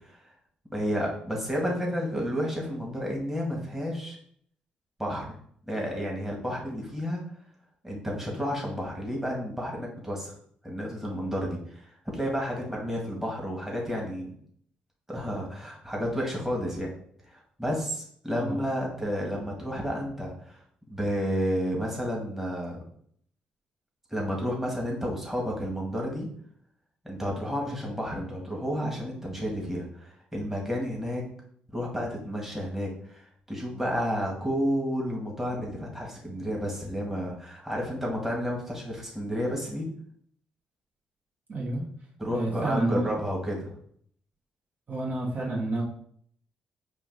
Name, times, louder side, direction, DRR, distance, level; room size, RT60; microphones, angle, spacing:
voice 1, 0.7-4.2 5.0-5.3 5.7-7.2 7.8-10.3 10.6-14.3 15.1-16.9 17.3-20.6 20.9-22.8 24.1-26.3 27.0-31.2 31.7-39.9 42.2-43.7, equal, 10° right, -2 dB, 1.7 m, -31 dB
voice 2, 41.5-41.9 42.3-43.2 44.9-45.8, right 2 dB, 50° right, -4 dB, 1.5 m, -29 dB
4.6 x 2.5 x 3.9 m, 0.62 s
hypercardioid pair, 45°, 4 cm